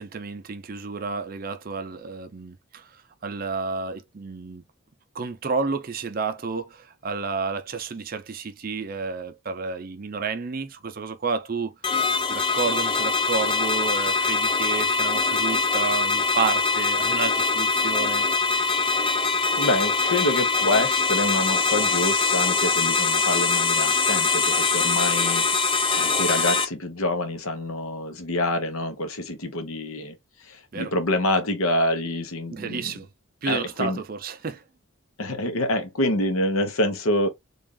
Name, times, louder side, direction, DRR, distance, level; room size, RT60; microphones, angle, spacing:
voice 1, 0.0-4.6 5.1-18.3 30.7-30.9 32.5-33.1 33.4-34.6, right 4 dB, 45° right, 0.5 m, -31 dB
sound 1, 11.8-26.6, left 4 dB, 25° left, 0.4 m, -23 dB
voice 2, 19.6-25.5 25.9-30.2 30.4-32.9 33.5-34.0 35.2-37.3, left 1 dB, 85° left, 1.0 m, -26 dB
3.5 x 2.4 x 3.7 m
head